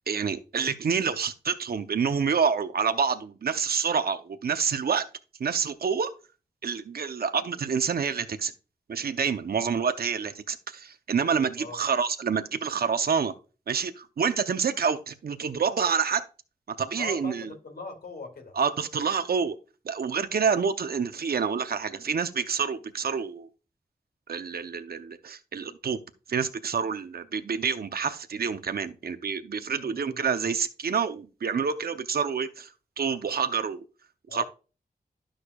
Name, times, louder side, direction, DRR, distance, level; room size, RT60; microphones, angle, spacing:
voice 1, 0.1-5.1 5.4-6.1 6.6-8.5 8.9-13.3 13.7-16.2 16.7-17.5 18.5-19.6 19.9-23.5 24.3-26.0 26.3-32.7 33.0-33.8 34.3-34.4, right 6 dB, 70° right, 0.7 m, -28 dB
voice 2, 17.0-18.5 29.7-30.2 34.3-34.4, left 3 dB, 80° left, 2.6 m, -40 dB
12.0 x 6.4 x 2.3 m
wide cardioid pair, 105°, 16 cm